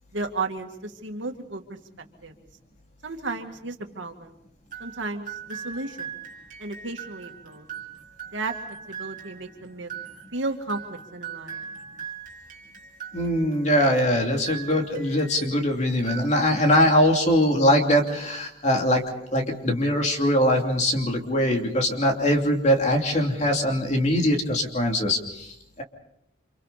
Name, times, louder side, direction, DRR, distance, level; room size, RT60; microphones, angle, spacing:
voice 1, 0.1-1.6 2.2-2.3 3.0-4.3 4.8-6.1 6.6-7.7 8.3-8.5 8.9-9.9 10.3-11.7, right 3 dB, 75° right, 4 dB, 2.3 m, -33 dB
sound 1, 4.7-15.6 15.9-16.8, right 7 dB, 45° right, 3.1 m, -40 dB
voice 2, 13.1-19.0 19.3-25.8, equal, 35° left, 2 dB, 2.9 m, -22 dB
29.5 x 27.0 x 4.2 m, 0.79 s
head